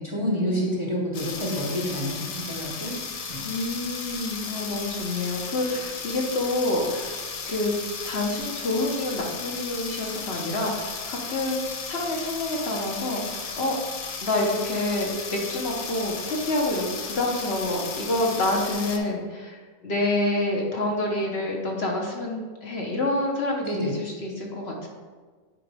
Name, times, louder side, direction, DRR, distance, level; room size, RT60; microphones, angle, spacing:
voice 1, 0.0-3.0 3.3-3.5 23.6-24.0, equal, 25° right, -2 dB, 1.0 m, -28 dB
sound 1, 1.1-19.0, left 5 dB, 85° left, 1.2 m, -35 dB
voice 2, 3.4-7.8 8.0-13.8 14.2-19.6 19.8-24.9, left 2 dB, 55° left, -1 dB, 1.2 m, -27 dB
8.8 x 5.0 x 3.4 m, 1.4 s
omnidirectional pair, 1.3 m